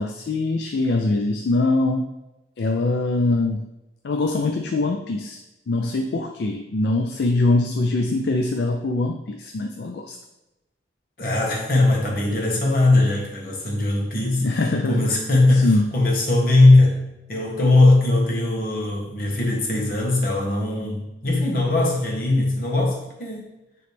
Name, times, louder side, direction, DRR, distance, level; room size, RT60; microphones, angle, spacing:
voice 1, 0.0-2.1 2.6-3.7 4.0-5.4 5.7-10.2 14.4-15.1 15.5-15.9, left 2 dB, 65° left, 4 dB, 0.4 m, -23 dB
voice 2, 11.2-14.5 14.9-23.5, left 2 dB, 50° left, -2 dB, 1.4 m, -20 dB
9.2 x 3.2 x 3.4 m, 0.97 s
head